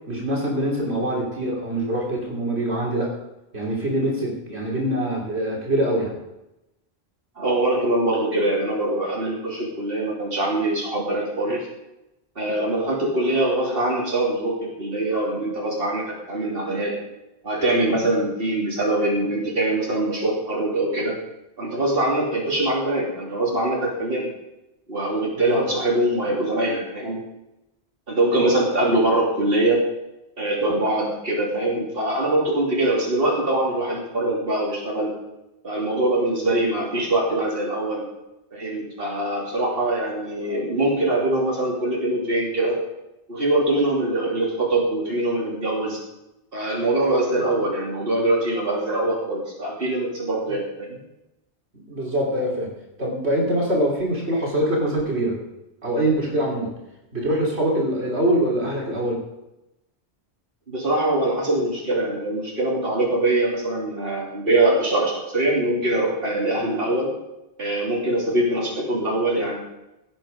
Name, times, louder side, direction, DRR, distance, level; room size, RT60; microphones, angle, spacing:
voice 1, 0.1-3.1 3.5-6.2 25.4-25.7 51.9-52.7 53.0-55.4 55.8-56.7 57.1-59.2, right 1 dB, 80° right, -2 dB, 3.3 m, -24 dB
voice 2, 7.4-11.7 12.3-16.9 17.4-21.2 21.6-24.3 24.9-27.2 28.1-29.8 30.4-35.1 35.6-38.0 38.5-42.8 43.3-46.0 46.5-51.0 60.7-67.1 67.6-69.6, right 1 dB, 60° right, -4 dB, 3.2 m, -23 dB
16.5 x 9.0 x 5.2 m, 0.93 s
omnidirectional pair, 1.1 m